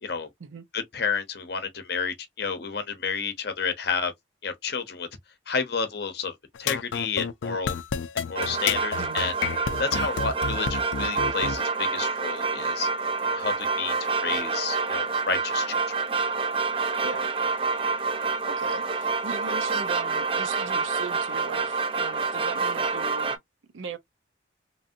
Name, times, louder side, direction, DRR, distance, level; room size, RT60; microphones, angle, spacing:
voice 1, 0.7-4.1 4.4-5.1 5.5-7.8 8.3-9.3 9.8-12.9 13.2-16.0, left 5 dB, 55° left, 0.7 m, -30 dB
sound 1, 6.5-11.6, left 6 dB, 80° left, 0.4 m, -30 dB
sound 2, 8.4-23.4, right 4 dB, 30° right, 0.4 m, -27 dB
voice 2, 18.5-23.4 23.7-24.0, right 5 dB, 85° right, 0.5 m, -38 dB
3.0 x 2.6 x 2.5 m
head